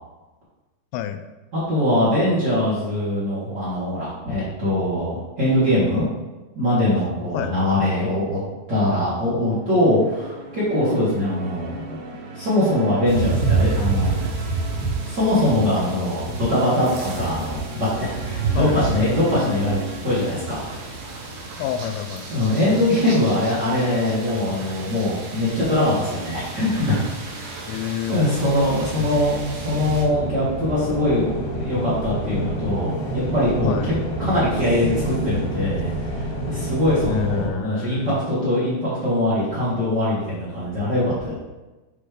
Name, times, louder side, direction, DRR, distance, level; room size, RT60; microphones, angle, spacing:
voice 1, 0.9-1.2 7.3-7.6 18.5-18.8 21.6-22.3 27.7-28.3 29.0-29.3 33.6-33.9 37.0-38.2, left 10 dB, 90° left, 9 dB, 2.8 m, -29 dB
voice 2, 1.5-6.1 6.5-8.4 8.7-11.8 12.3-14.3 15.1-20.7 22.3-27.0 27.4-27.8 28.1-33.9 34.2-41.3, left 1 dB, 45° right, -10 dB, 1.3 m, -22 dB
sound 1, 9.5-20.6, right 2 dB, 85° right, 3.2 m, -37 dB
sound 2, 13.1-30.0, right 4 dB, 65° right, 2.7 m, -30 dB
sound 3, 24.9-25.6 26.1-37.5, right 1 dB, 70° left, 2.3 m, -30 dB
8.6 x 3.1 x 5.0 m, 1.1 s
omnidirectional pair, 4.9 m